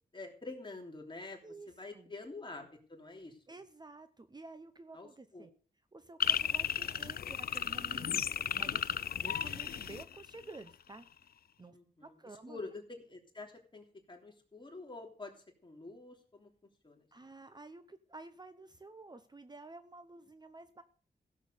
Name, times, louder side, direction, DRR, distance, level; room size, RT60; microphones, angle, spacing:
voice 1, 0.1-1.4 1.8-3.4 4.9-5.1 5.3-5.5 11.7-12.1 12.5-15.3 15.6-16.5 16.8-17.0, left 3 dB, 30° left, 1 dB, 3.3 m, -47 dB
voice 2, 1.4-2.1 3.5-5.5 5.9-11.1 11.6-12.6 17.1-20.8, right 3 dB, 25° right, 10 dB, 0.8 m, -51 dB
sound 1, 6.2-10.7, left 8 dB, 70° left, 0.5 m, -34 dB
15.5 x 7.4 x 6.6 m, 0.42 s
wide cardioid pair, 115°, 16 cm